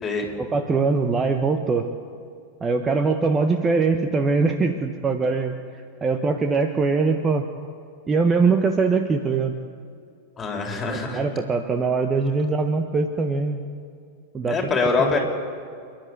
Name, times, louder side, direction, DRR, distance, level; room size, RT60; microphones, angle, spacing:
voice 1, 0.4-1.9 2.6-5.5 6.0-7.5 8.1-9.5 10.8-13.6 14.3-14.6 15.0-15.1, right 4 dB, 20° right, 6 dB, 1.2 m, -22 dB
voice 2, 10.4-11.2 14.5-15.2, left 4 dB, 20° left, 1 dB, 4.4 m, -24 dB
28.0 x 12.0 x 8.2 m, 2.3 s
figure-of-eight pair, 90°, 0 cm